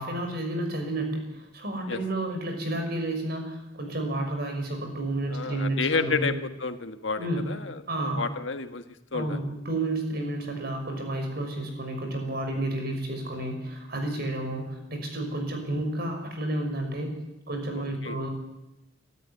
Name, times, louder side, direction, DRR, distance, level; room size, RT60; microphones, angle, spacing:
voice 1, 0.0-6.3 7.2-7.5 7.9-8.2 9.1-17.2 17.5-18.3, right 1 dB, 55° right, 4 dB, 5.9 m, -31 dB
voice 2, 5.3-8.8 9.1-9.4 17.7-18.2, left 4 dB, 85° left, 8 dB, 1.6 m, -31 dB
25.0 x 13.5 x 9.7 m, 0.95 s
head